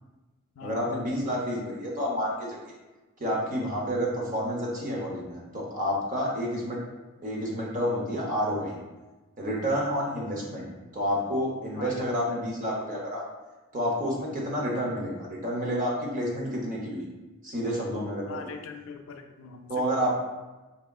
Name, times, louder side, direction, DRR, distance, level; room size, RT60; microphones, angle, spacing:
voice 1, 0.6-2.8 3.2-6.8 7.2-8.8 9.4-13.2 13.7-17.0 17.4-18.5 19.7-20.1, equal, 35° right, -2 dB, 0.8 m, -29 dB
voice 2, 11.8-12.4 18.3-19.8, left 5 dB, 65° left, 4 dB, 0.4 m, -42 dB
4.1 x 3.4 x 2.3 m, 1.2 s
head